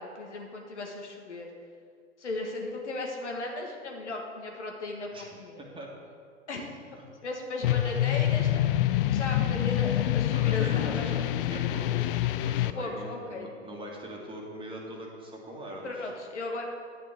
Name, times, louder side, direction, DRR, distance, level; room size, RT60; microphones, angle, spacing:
voice 1, 0.0-1.5 2.2-5.6 6.5-6.7 7.2-8.7 9.0-11.1 12.7-13.5 15.8-16.7, left 2 dB, 80° left, 1 dB, 1.7 m, -36 dB
voice 2, 5.6-5.9 7.0-7.1 9.3-9.8 10.3-16.1, right 1 dB, 15° right, -1 dB, 1.8 m, -41 dB
sound 1, 7.6-12.7, left 13 dB, 50° left, 0.4 m, -26 dB
10.0 x 9.3 x 3.7 m, 2.2 s
hypercardioid pair, 110°, 35 cm